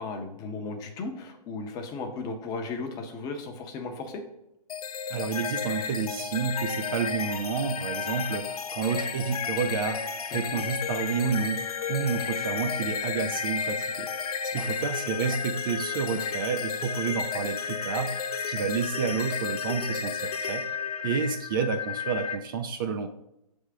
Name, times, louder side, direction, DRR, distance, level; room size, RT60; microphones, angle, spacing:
voice 1, 0.0-4.2 10.5-10.6 14.5-14.9, left 3 dB, 20° left, 5 dB, 0.6 m, -36 dB
sound 1, 4.7-22.4, left 6 dB, 70° left, 0.6 m, -32 dB
voice 2, 5.1-20.6 21.0-23.1, right 6 dB, 35° right, 7 dB, 0.4 m, -30 dB
6.3 x 3.5 x 4.8 m, 0.86 s
hypercardioid pair, 140°, 20 cm